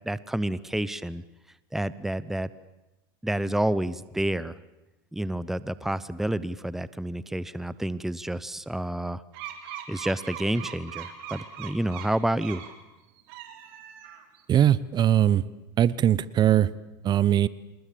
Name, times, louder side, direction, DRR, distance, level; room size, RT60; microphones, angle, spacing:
voice 1, 0.0-1.2 1.7-2.5 3.2-4.5 5.1-9.2 9.9-12.6, right 1 dB, 5° right, 17 dB, 0.8 m, -29 dB
sound 1, 9.3-12.8 13.2-14.4, right 10 dB, 65° right, 3.5 m, -40 dB
voice 2, 14.5-15.4 15.8-16.7 17.0-17.5, right 11 dB, 35° right, 19 dB, 0.9 m, -20 dB
27.0 x 20.5 x 8.6 m, 1.0 s
supercardioid pair, 110°, 13 cm